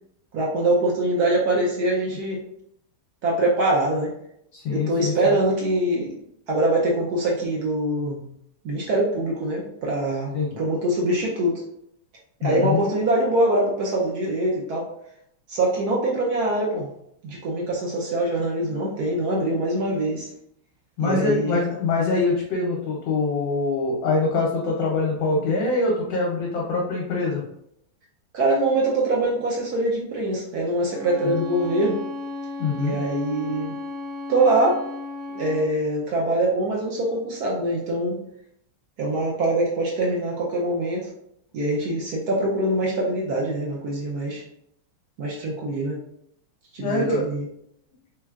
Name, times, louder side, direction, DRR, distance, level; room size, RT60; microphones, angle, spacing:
voice 1, 0.3-2.4 3.2-4.1 4.7-6.1 6.5-8.2 8.6-10.3 10.6-11.6 12.4-14.9 15.5-16.9 17.2-20.3 21.0-21.6 28.3-32.0 32.8-33.8 34.3-34.8 35.3-38.2 39.0-41.1 41.5-44.4 45.2-46.0 46.7-47.4, right 1 dB, 70° right, -3 dB, 0.9 m, -23 dB
voice 2, 4.5-5.1 10.3-10.6 12.4-12.8 21.0-27.4 31.2-31.4 32.6-33.0 46.8-47.2, left 3 dB, 70° left, -2 dB, 1.3 m, -24 dB
Bowed string instrument, 30.9-35.7, left 3 dB, 45° left, 1.5 m, -34 dB
3.5 x 3.2 x 2.3 m, 0.75 s
omnidirectional pair, 2.3 m